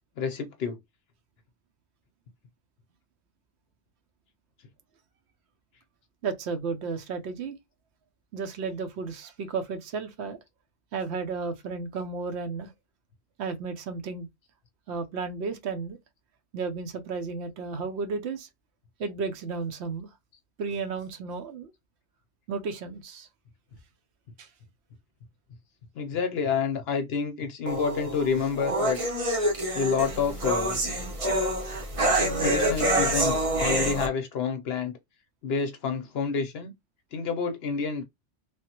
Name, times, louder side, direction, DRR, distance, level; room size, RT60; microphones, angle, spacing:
voice 1, 0.2-0.8 25.9-29.0 29.7-30.8 32.4-35.0 35.4-36.7 37.1-38.0, left 5 dB, 65° left, 0.8 m, -28 dB
voice 2, 6.2-7.6 8.3-10.4 10.9-12.7 13.4-14.3 14.9-16.0 16.5-18.5 19.0-20.1 20.6-21.7 22.5-23.3 24.4-24.5, right 4 dB, 65° right, 0.8 m, -33 dB
sound 1, 27.7-34.1, right 1 dB, 35° right, 0.7 m, -26 dB
3.3 x 2.1 x 2.8 m
omnidirectional pair, 1.3 m